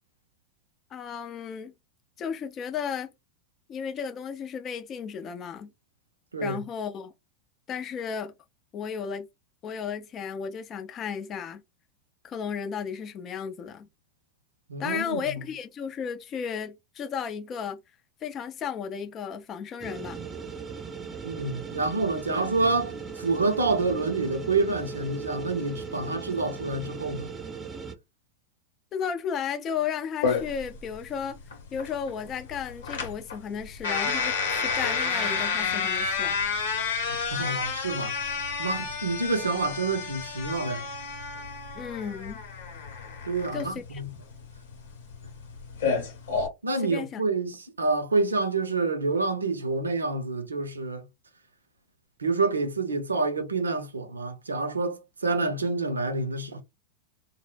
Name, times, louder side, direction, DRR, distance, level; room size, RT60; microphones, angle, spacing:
voice 1, 0.9-1.7 2.2-3.1 3.7-5.7 6.4-7.1 7.7-8.3 8.7-9.3 9.6-11.6 12.2-13.9 14.8-17.8 18.2-20.2 28.9-31.4 31.7-36.4 41.7-42.4 43.5-44.0 46.8-47.2, left 7 dB, 35° left, 0.5 m, -34 dB
voice 2, 14.7-15.4 21.2-27.3 37.1-38.2 38.6-40.9 43.2-44.1 46.6-51.0 52.2-56.6, right 3 dB, 85° right, 0.5 m, -28 dB
sound 1, 19.8-27.9, right 5 dB, 20° right, 0.5 m, -38 dB
sound 2, 30.2-46.5, left 5 dB, 70° left, 0.9 m, -30 dB
2.0 x 2.0 x 3.2 m
figure-of-eight pair, 90°, 0 cm